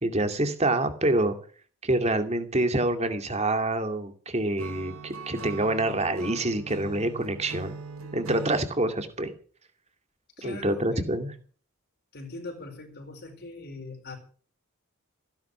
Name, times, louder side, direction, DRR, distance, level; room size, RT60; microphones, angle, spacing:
voice 1, 0.0-1.4 1.8-7.7 8.1-9.3 10.4-11.3, right 1 dB, 30° right, 7 dB, 2.4 m, -26 dB
Acoustic guitar / Strum, 4.6-8.7, right 4 dB, 70° right, 3.6 m, -40 dB
voice 2, 10.4-11.1 12.1-14.2, left 2 dB, 45° left, 3 dB, 4.6 m, -41 dB
16.5 x 11.0 x 6.9 m, 0.42 s
head